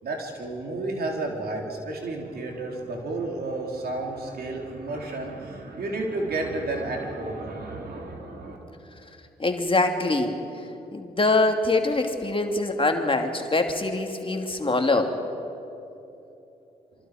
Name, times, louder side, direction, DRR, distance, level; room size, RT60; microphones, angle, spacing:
voice 1, 0.0-8.6, right 2 dB, 65° right, 1 dB, 4.0 m, -31 dB
voice 2, 9.4-10.3 10.9-15.1, left 2 dB, 30° left, 4 dB, 2.7 m, -24 dB
27.5 x 24.0 x 5.1 m, 2.9 s
hypercardioid pair, 40°, 17 cm